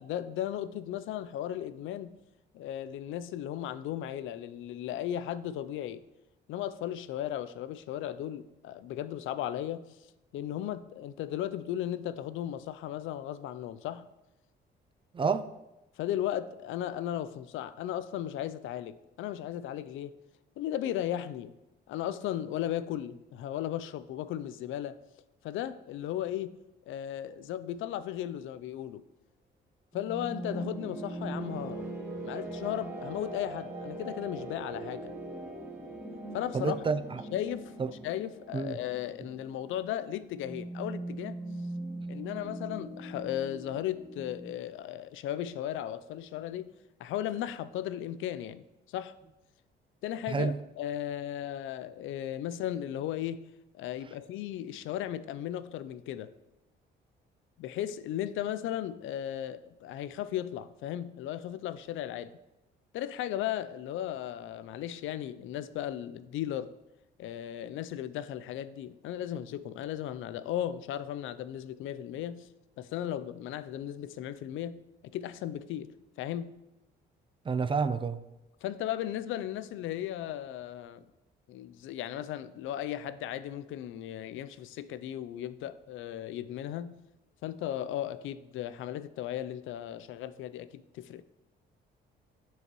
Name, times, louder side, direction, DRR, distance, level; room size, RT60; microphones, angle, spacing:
voice 1, 0.0-2.2 2.5-6.0 6.5-9.9 10.3-14.1 16.0-20.2 20.6-21.5 21.9-25.0 25.4-29.0 29.9-31.8 32.2-35.1 36.3-36.8 37.3-37.7 38.0-41.4 42.1-46.7 47.0-49.2 50.0-53.5 53.7-56.3 57.6-62.4 62.9-66.7 67.2-72.5 72.8-74.8 75.1-75.9 76.2-76.6 78.6-81.1 81.5-87.0 87.4-91.2, left 11 dB, 80° left, 0.4 m, -36 dB
voice 2, 15.1-15.5 36.5-37.2 37.8-37.9 38.5-38.8 50.3-50.6 77.5-78.2, right 5 dB, 25° right, 0.4 m, -29 dB
sound 1, 29.9-44.5, right 1 dB, 10° right, 1.2 m, -41 dB
9.6 x 4.7 x 3.0 m
cardioid pair, 90°, 20 cm